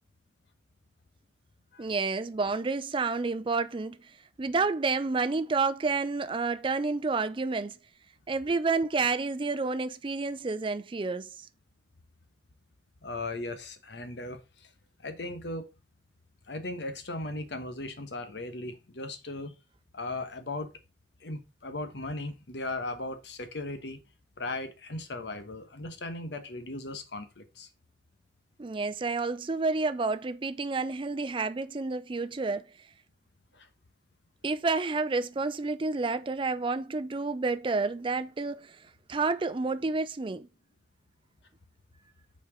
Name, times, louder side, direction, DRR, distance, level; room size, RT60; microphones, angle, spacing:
voice 1, 1.8-4.0 4.4-7.8 8.3-11.3 28.6-32.6 34.4-38.8 39.1-40.5, right 3 dB, 30° right, 0.4 m, -29 dB
voice 2, 13.0-14.7 15.0-15.7 16.5-19.5 19.9-20.7 21.2-24.0 24.4-27.7 33.5-33.7, left 2 dB, 70° left, 1.1 m, -37 dB
5.8 x 4.4 x 5.0 m
head